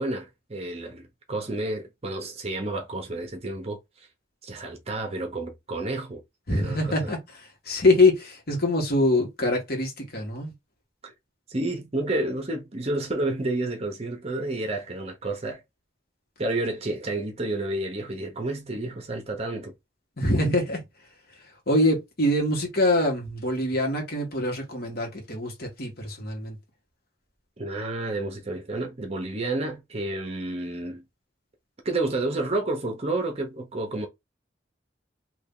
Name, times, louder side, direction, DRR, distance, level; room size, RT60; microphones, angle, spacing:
voice 1, 0.0-3.8 4.4-6.2 6.5-7.1 11.0-11.1 11.5-15.6 16.4-19.7 27.6-31.0 31.8-34.1, right 2 dB, 35° right, 0.8 m, -30 dB
voice 2, 6.5-10.5 20.2-20.8 21.7-26.5, left 2 dB, 55° left, 1.5 m, -24 dB
2.8 x 2.7 x 3.7 m
head